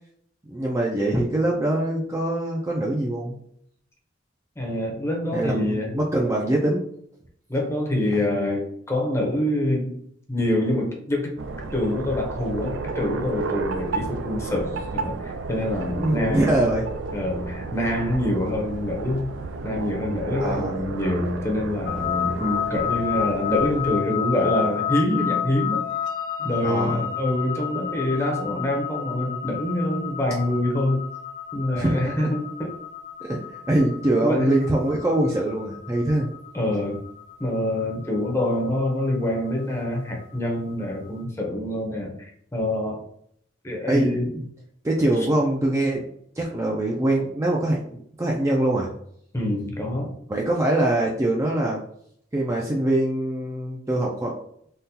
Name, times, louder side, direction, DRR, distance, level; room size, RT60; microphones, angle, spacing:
voice 1, 0.5-3.4 5.3-6.8 16.0-16.9 20.4-20.7 26.4-27.1 31.7-32.1 33.2-33.4 33.7-36.3 43.9-44.4 44.8-46.0 46.4-48.9 50.3-51.8 52.3-54.3, right 1 dB, 15° right, -2 dB, 0.4 m, -23 dB
voice 2, 4.6-5.9 7.5-10.0 10.3-11.3 11.7-16.6 17.1-19.3 19.6-25.8 26.4-31.1 31.5-32.8 34.2-34.6 36.5-37.0 37.4-42.3 42.5-43.1 43.6-44.4 49.3-50.1, left 1 dB, 15° left, 0 dB, 0.7 m, -25 dB
sound 1, 11.4-24.0, right 3 dB, 80° right, 0.4 m, -33 dB
sound 2, 21.9-40.9, left 9 dB, 75° left, 0.5 m, -31 dB
3.7 x 2.3 x 2.7 m, 0.67 s
head